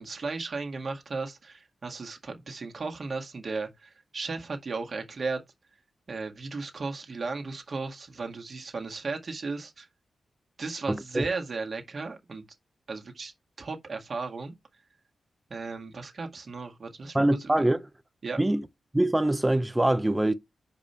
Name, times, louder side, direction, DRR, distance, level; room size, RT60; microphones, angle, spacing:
voice 1, 0.0-5.4 6.1-9.9 10.6-12.4 12.9-13.3 13.6-14.5 15.5-17.8 18.2-18.4, right 4 dB, 50° right, 1.8 m, -35 dB
voice 2, 10.9-11.3 17.1-17.8 18.4-18.7 18.9-20.3, right 1 dB, 15° right, 0.7 m, -24 dB
5.3 x 5.2 x 4.3 m
cardioid pair, 75°, 0 cm